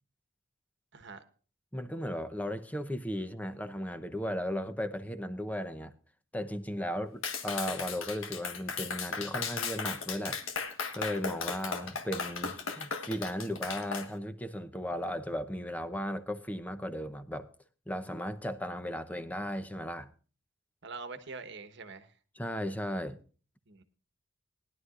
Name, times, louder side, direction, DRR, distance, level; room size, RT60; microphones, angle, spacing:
voice 1, 0.9-1.2 20.8-22.1 23.7-23.8, right 4 dB, 65° right, 1.2 m, -44 dB
voice 2, 1.7-5.9 6.3-17.5 17.9-20.1 22.4-23.2, equal, 10° left, 0.8 m, -36 dB
Clapping, 7.2-14.1, left 5 dB, 80° left, 1.5 m, -36 dB
20.0 x 11.0 x 2.5 m
head